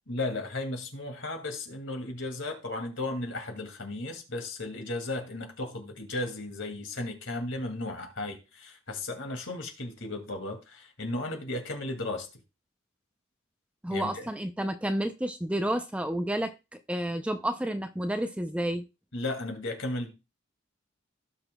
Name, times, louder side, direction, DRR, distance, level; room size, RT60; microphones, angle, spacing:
voice 1, 0.1-12.3 13.9-14.3 19.1-20.1, left 2 dB, 70° left, 2.2 m, -35 dB
voice 2, 13.8-16.5 16.9-18.8, right 1 dB, 5° right, 0.5 m, -30 dB
16.5 x 5.9 x 2.3 m
head